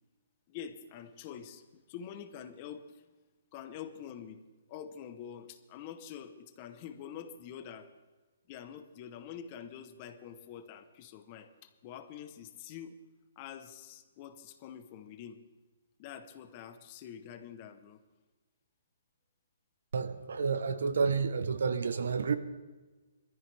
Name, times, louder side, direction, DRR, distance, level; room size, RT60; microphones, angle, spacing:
voice 1, 0.5-3.0 3.5-4.4 4.7-7.9 8.5-13.0 13.4-15.4 16.0-18.0, left 8 dB, 25° left, 0.9 m, -46 dB
voice 2, 19.9-22.4, right 5 dB, 70° right, 1.0 m, -30 dB
20.5 x 14.0 x 3.4 m
hypercardioid pair, 170°, 0 cm